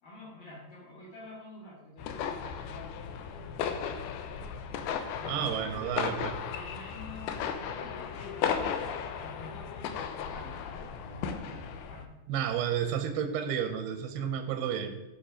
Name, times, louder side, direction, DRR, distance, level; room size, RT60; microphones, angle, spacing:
voice 1, 0.0-2.9 3.3-4.3 5.2-5.9 6.5-12.1, left 2 dB, 55° left, -8 dB, 3.9 m, -49 dB
sound 1, 2.0-12.0, left 7 dB, 75° left, 2.4 m, -35 dB
voice 2, 5.3-6.4 12.3-15.0, right 9 dB, 75° right, 7 dB, 2.5 m, -31 dB
15.0 x 6.0 x 5.0 m, 0.99 s
omnidirectional pair, 5.1 m